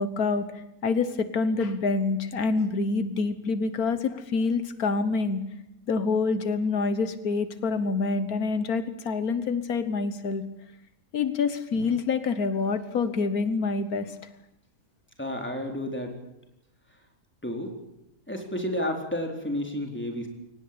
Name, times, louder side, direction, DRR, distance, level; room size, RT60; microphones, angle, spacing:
voice 1, 0.0-5.4 5.9-10.4 11.1-14.2, left 4 dB, 85° left, 12 dB, 1.8 m, -27 dB
voice 2, 15.2-16.2 17.4-17.8 18.3-20.3, left 1 dB, 5° left, 3 dB, 4.0 m, -31 dB
23.5 x 19.0 x 8.7 m, 0.81 s
omnidirectional pair, 1.5 m